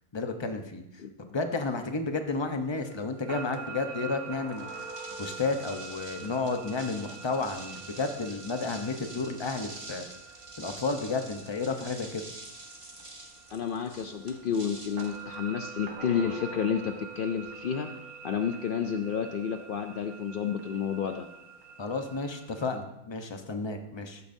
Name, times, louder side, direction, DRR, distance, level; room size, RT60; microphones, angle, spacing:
voice 1, 0.1-4.7 5.1-10.0 10.6-12.3 21.8-24.2, left 3 dB, 25° left, 6 dB, 0.7 m, -32 dB
sound 1, 2.8-22.8, right 4 dB, 70° right, 1.7 m, -45 dB
sound 2, 4.5-15.9, right 2 dB, 20° right, 1.3 m, -47 dB
voice 2, 13.5-17.9 18.2-21.3, left 7 dB, 70° left, 6 dB, 0.5 m, -30 dB
14.0 x 11.0 x 2.7 m, 0.85 s
omnidirectional pair, 1.6 m